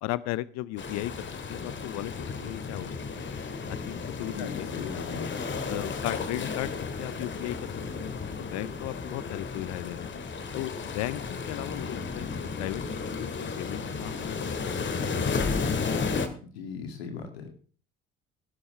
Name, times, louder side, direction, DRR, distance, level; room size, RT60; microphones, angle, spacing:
voice 1, 0.0-3.3 3.7-4.7 5.2-5.3 5.7-6.7 7.0-8.1 8.4-10.1 10.5-15.4 15.8-15.9, left 17 dB, 60° left, 19 dB, 0.6 m, -36 dB
sound 1, 0.8-16.3, left 4 dB, 35° left, 2.2 m, -33 dB
voice 2, 4.3-5.3 16.4-17.5, left 5 dB, 80° left, 5 dB, 2.3 m, -38 dB
16.5 x 12.0 x 3.3 m, 0.41 s
hypercardioid pair, 60°, 31 cm